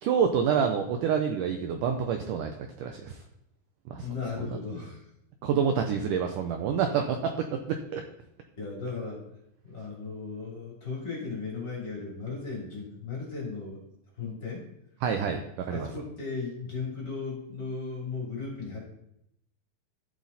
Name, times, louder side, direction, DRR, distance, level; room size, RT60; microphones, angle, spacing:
voice 1, 0.0-3.2 3.9-4.1 5.4-8.0 15.0-15.9, right 7 dB, 80° right, 5 dB, 1.9 m, -28 dB
voice 2, 4.0-5.1 8.6-9.2 9.6-13.8 14.2-14.7 15.7-18.8, left 4 dB, 30° left, -3 dB, 3.3 m, -36 dB
13.5 x 7.5 x 4.1 m, 0.78 s
omnidirectional pair, 4.5 m